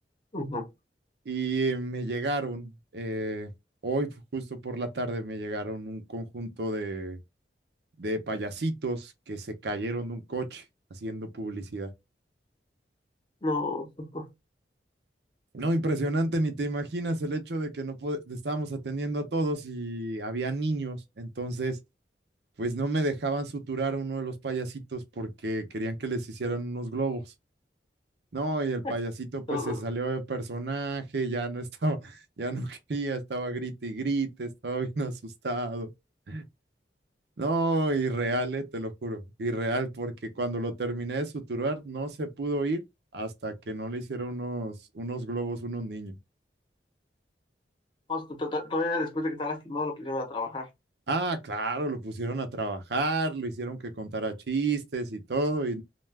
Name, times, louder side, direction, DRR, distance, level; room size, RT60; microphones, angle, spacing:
voice 1, 0.3-0.7 13.4-14.3 28.8-28.9 29.5-29.8 48.1-50.7, left 2 dB, 30° left, 0.8 m, -31 dB
voice 2, 1.3-3.5 3.8-7.2 8.0-10.6 10.9-11.9 15.5-21.8 22.6-27.2 28.3-35.9 36.3-36.4 37.4-42.8 43.1-46.2 51.1-55.8, right 2 dB, 70° right, 0.6 m, -31 dB
2.3 x 2.2 x 3.3 m
head